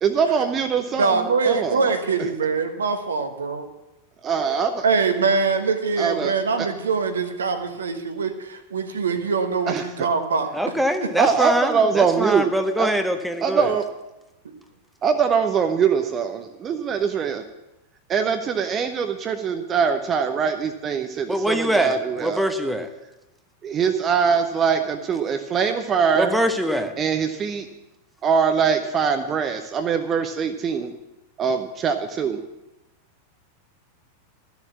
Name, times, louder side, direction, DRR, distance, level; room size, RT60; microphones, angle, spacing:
voice 1, 0.0-1.9 4.2-4.8 6.0-6.3 6.6-6.7 9.7-10.1 11.2-12.5 12.8-12.9 13.4-13.8 15.0-17.4 18.1-22.4 23.6-26.4 27.0-27.7 28.2-30.9 31.4-32.4, right 6 dB, 25° right, 7 dB, 0.8 m, -22 dB
voice 2, 1.0-3.7 4.8-10.5, right 4 dB, 70° right, 7 dB, 1.3 m, -23 dB
voice 3, 10.5-13.7 21.3-22.9 26.2-26.9, equal, 5° right, 7 dB, 0.9 m, -23 dB
13.0 x 7.2 x 7.2 m, 0.96 s
figure-of-eight pair, 90°, 0 cm